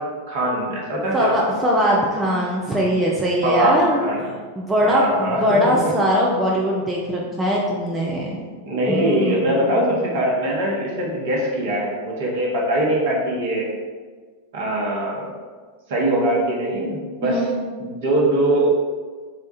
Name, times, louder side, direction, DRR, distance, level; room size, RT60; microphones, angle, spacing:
voice 1, 0.0-1.3 3.4-4.3 4.8-5.9 8.6-13.7 14.5-15.3 15.9-17.4 17.8-18.7, right 1 dB, 55° right, -3 dB, 1.1 m, -22 dB
voice 2, 1.1-4.0 4.6-8.4 8.9-9.6 17.2-17.6, equal, 15° right, -3 dB, 0.5 m, -21 dB
4.1 x 2.3 x 4.1 m, 1.5 s
figure-of-eight pair, 90°, 0 cm